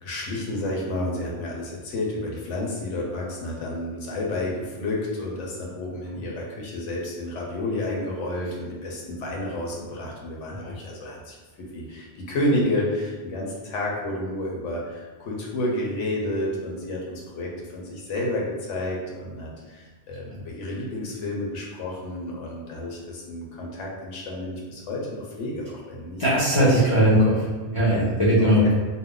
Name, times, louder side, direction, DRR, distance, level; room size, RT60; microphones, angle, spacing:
voice 1, 0.0-26.3 27.9-28.1 28.4-28.7, left 1 dB, 80° left, -2 dB, 1.0 m, -30 dB
voice 2, 26.2-28.6, right 1 dB, 35° left, -9 dB, 0.6 m, -19 dB
2.5 x 2.0 x 3.7 m, 1.3 s
omnidirectional pair, 1.2 m